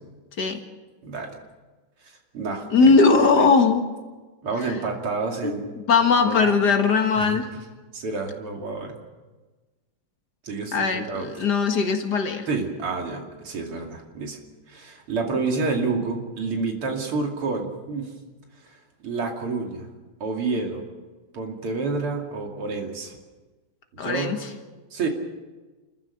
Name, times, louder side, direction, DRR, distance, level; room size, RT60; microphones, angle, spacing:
voice 1, 2.0-3.0 3.3-3.5 4.4-5.6 6.2-6.5 7.1-7.4 7.9-9.0 10.4-11.3 12.5-14.4 14.7-18.1 18.6-18.8 19.0-19.9 20.2-20.8 21.3-23.2 23.9-24.3 24.9-25.1, right 3 dB, 80° right, 1 dB, 3.5 m, -29 dB
voice 2, 2.7-3.8 5.4-5.5 5.9-7.5 10.7-12.5 24.0-24.4, left 4 dB, 50° left, 5 dB, 2.2 m, -19 dB
29.5 x 14.5 x 6.5 m, 1.3 s
omnidirectional pair, 2.4 m